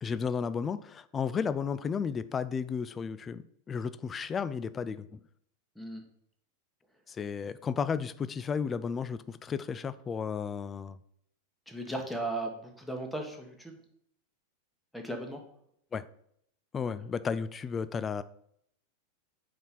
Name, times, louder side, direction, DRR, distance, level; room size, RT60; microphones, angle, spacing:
voice 1, 0.0-5.2 7.1-11.0 15.9-16.0 16.7-18.2, left 6 dB, 20° left, 0.3 m, -33 dB
voice 2, 11.7-13.8 14.9-15.4, right 1 dB, 5° left, 1.1 m, -36 dB
4.5 x 4.2 x 5.6 m
figure-of-eight pair, 90°, 0 cm